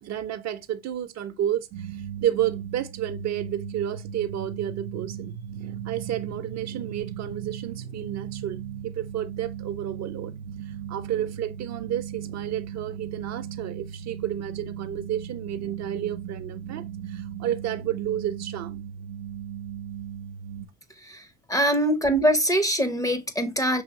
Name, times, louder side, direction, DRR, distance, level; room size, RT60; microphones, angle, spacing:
voice 1, 0.0-5.3 5.8-10.4 10.9-18.8, right 11 dB, 50° right, 0.7 m, -31 dB
sound 1, 1.7-20.7, right 9 dB, 80° right, 0.6 m, -37 dB
voice 2, 21.0-23.8, equal, 10° left, 0.7 m, -23 dB
5.6 x 3.0 x 2.8 m
hypercardioid pair, 75°, 35 cm